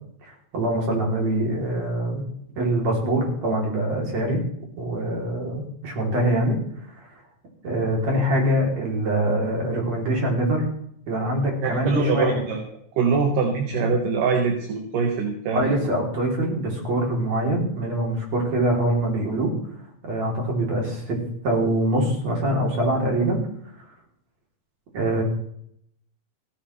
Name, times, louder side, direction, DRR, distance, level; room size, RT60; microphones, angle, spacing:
voice 1, 0.2-2.2 2.6-4.5 4.8-6.6 7.0-7.1 7.6-10.7 11.1-12.4 13.7-13.9 15.5-19.5 20.0-21.2 21.4-23.4 24.9-25.2, right 1 dB, 50° right, -1 dB, 4.4 m, -24 dB
voice 2, 11.6-12.6 13.0-15.8, right 5 dB, 70° right, 2 dB, 3.0 m, -23 dB
16.5 x 14.5 x 3.3 m, 0.69 s
omnidirectional pair, 4.1 m